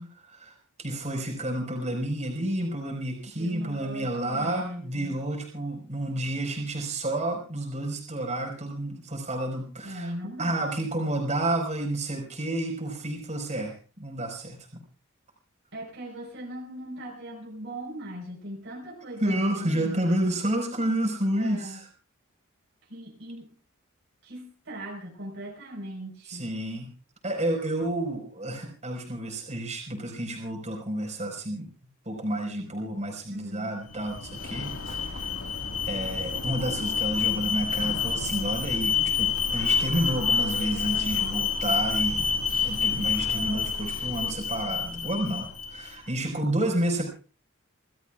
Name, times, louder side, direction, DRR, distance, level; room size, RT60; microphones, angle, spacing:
voice 1, 0.3-10.1 10.4-14.6 19.2-21.8 26.3-26.9 27.2-31.7 32.1-35.3 35.8-42.4 42.6-47.1, right 1 dB, 35° right, 0 dB, 5.1 m, -30 dB
voice 2, 3.3-5.2 9.8-10.7 15.7-20.1 21.3-21.8 22.9-23.5 24.2-26.4 33.3-33.7 40.9-41.4, equal, 60° right, -1 dB, 4.7 m, -39 dB
Alarm, 33.9-45.9, left 6 dB, 80° left, 2.0 m, -28 dB
30.0 x 14.5 x 2.5 m, 0.36 s
head